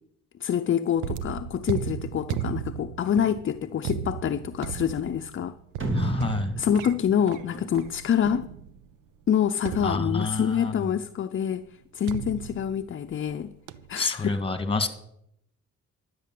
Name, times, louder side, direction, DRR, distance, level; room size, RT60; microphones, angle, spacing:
voice 1, 0.4-5.6 6.6-8.5 9.3-11.7 11.9-13.5 13.9-14.4, left 8 dB, 40° left, 0.6 m, -26 dB
sound 1, 1.0-8.9 9.6-10.6 12.1-13.3 13.7-14.0, right 10 dB, 90° right, 0.7 m, -36 dB
sound 2, 5.8-8.3, equal, 40° right, 3.1 m, -31 dB
voice 2, 5.9-6.5 9.8-10.9 14.0-14.9, left 3 dB, 20° left, 1.8 m, -28 dB
12.0 x 8.4 x 7.6 m
cardioid pair, 90°, 30 cm